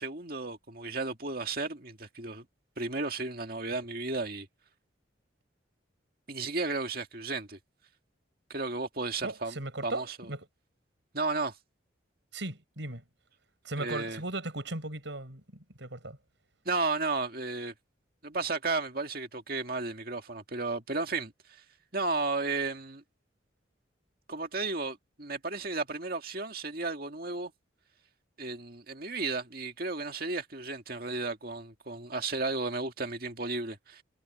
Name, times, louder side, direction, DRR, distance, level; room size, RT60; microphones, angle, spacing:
voice 1, 0.0-2.5 2.8-4.5 6.3-7.6 8.5-9.6 9.8-10.3 11.1-11.6 13.8-14.2 16.7-17.7 18.2-21.6 21.9-23.0 24.3-27.5 28.4-34.0, right 3 dB, 50° right, 2.1 m, -33 dB
voice 2, 9.2-10.4 12.3-13.0 13.6-15.4 15.8-16.2, right 2 dB, 70° right, 5.7 m, -37 dB
head